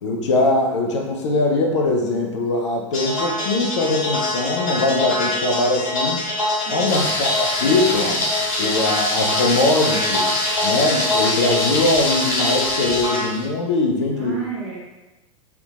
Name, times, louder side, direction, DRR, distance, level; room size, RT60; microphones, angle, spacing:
voice 1, 0.0-6.3 6.7-8.2 8.6-10.3 10.6-14.5, left 2 dB, 60° left, 1 dB, 0.5 m, -21 dB
sound 1, 2.9-13.2, left 2 dB, 75° left, 1.3 m, -25 dB
voice 2, 6.6-7.1 14.1-14.9, right 4 dB, 55° right, -3 dB, 0.5 m, -33 dB
Thunder, 6.9-13.5, left 1 dB, 15° left, 0.5 m, -25 dB
2.8 x 2.4 x 2.4 m, 1.1 s
figure-of-eight pair, 85°, 17 cm